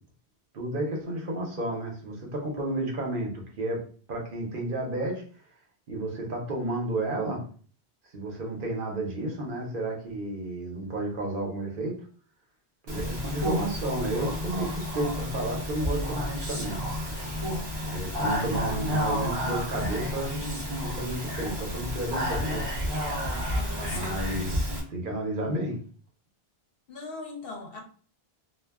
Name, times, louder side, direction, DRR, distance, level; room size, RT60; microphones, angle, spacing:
voice 1, 0.5-3.3 3.6-3.8 4.1-5.2 5.9-7.4 8.1-11.9 12.8-16.8 17.8-20.3 20.8-22.7 23.9-25.8, right 1 dB, 60° right, 0.9 m, -32 dB
Speech, 12.9-24.8, equal, 30° right, 0.6 m, -31 dB
voice 2, 23.5-24.2 26.9-27.8, left 3 dB, 65° left, 0.8 m, -40 dB
2.2 x 2.1 x 3.3 m
omnidirectional pair, 1.0 m